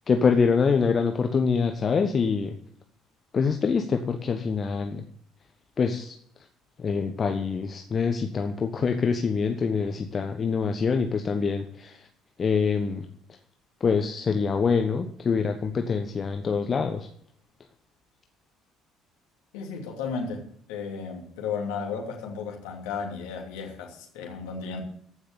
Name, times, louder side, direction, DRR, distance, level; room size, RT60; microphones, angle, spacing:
voice 1, 0.1-2.6 3.3-5.0 5.8-6.1 6.8-12.0 12.4-13.0 13.8-17.1, left 5 dB, 35° left, 1.2 m, -25 dB
voice 2, 19.5-24.8, left 5 dB, 65° left, 3.0 m, -34 dB
14.5 x 6.4 x 8.0 m
figure-of-eight pair, 55°, 0 cm